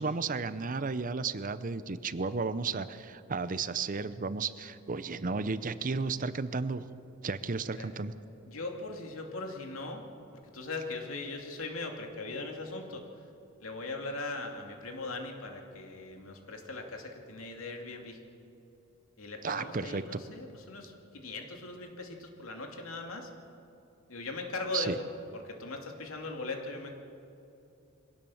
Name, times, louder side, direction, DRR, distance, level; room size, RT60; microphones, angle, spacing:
voice 1, 0.0-6.9 7.2-8.1 19.4-20.2 24.7-25.0, right 4 dB, 40° right, 14 dB, 0.6 m, -33 dB
voice 2, 8.5-10.0 10.5-13.0 13.6-18.2 19.2-23.3 24.1-25.0 25.3-27.0, left 3 dB, 75° left, 3 dB, 2.5 m, -39 dB
23.0 x 17.5 x 7.2 m, 2.7 s
head